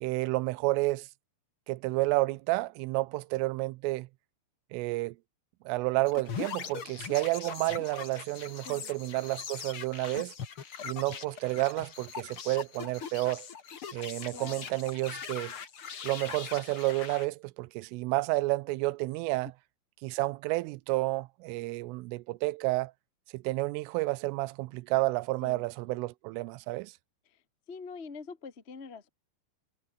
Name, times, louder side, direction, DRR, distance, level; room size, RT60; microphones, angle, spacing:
voice 1, 0.0-1.1 1.7-4.1 4.7-5.2 5.7-10.3 10.8-13.5 13.9-15.5 16.0-19.5 20.0-22.9 23.3-26.9, right 21 dB, 90° right, 3.3 m, -30 dB
sound 1, 6.1-17.3, left 7 dB, 55° left, 1.5 m, -41 dB
voice 2, 14.3-14.7 25.4-25.6 27.7-29.1, left 5 dB, 70° left, 0.6 m, -44 dB
omnidirectional pair, 5.7 m